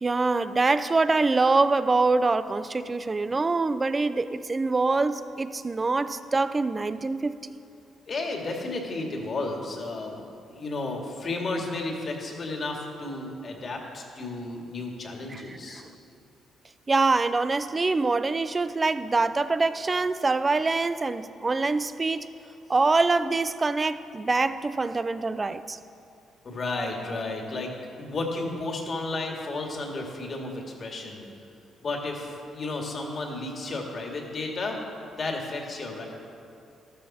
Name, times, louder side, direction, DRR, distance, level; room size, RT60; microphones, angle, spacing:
voice 1, 0.0-7.3 15.3-15.8 16.9-22.3 22.7-25.8, right 3 dB, 25° right, 13 dB, 0.5 m, -24 dB
voice 2, 8.1-15.8 26.4-27.7 28.0-31.3 31.8-34.8 35.2-36.1, left 2 dB, 45° left, 1 dB, 2.2 m, -33 dB
13.5 x 12.5 x 4.3 m, 2.6 s
cardioid pair, 90°, 0 cm